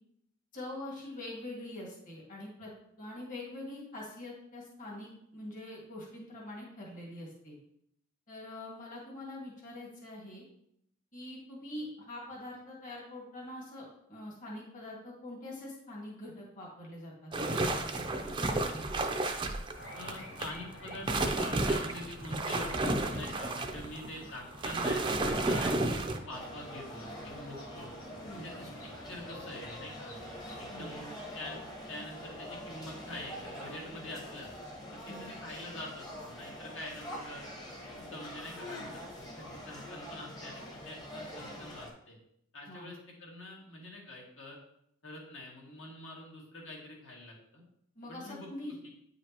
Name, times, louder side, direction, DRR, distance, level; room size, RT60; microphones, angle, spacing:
voice 1, 0.5-2.7 3.0-7.6 8.3-10.4 11.1-18.7 28.2-28.5 30.7-30.9 35.1-35.2 42.7-42.9 48.0-48.7, left 1 dB, 40° left, -3 dB, 1.9 m, -44 dB
sound 1, 17.3-20.5 20.9-26.2, right 2 dB, 25° right, 0.5 m, -32 dB
sound 2, 19.8-30.6, equal, 85° left, 1.4 m, -51 dB
voice 2, 19.9-27.9 28.4-30.2 30.6-34.5 34.9-37.5 37.9-42.2 42.5-44.6 45.0-47.6 48.1-48.7, left 1 dB, 70° left, -2 dB, 2.0 m, -45 dB
sound 3, 26.3-41.9, equal, 20° left, 1.0 m, -45 dB
9.3 x 5.0 x 2.9 m, 0.74 s
head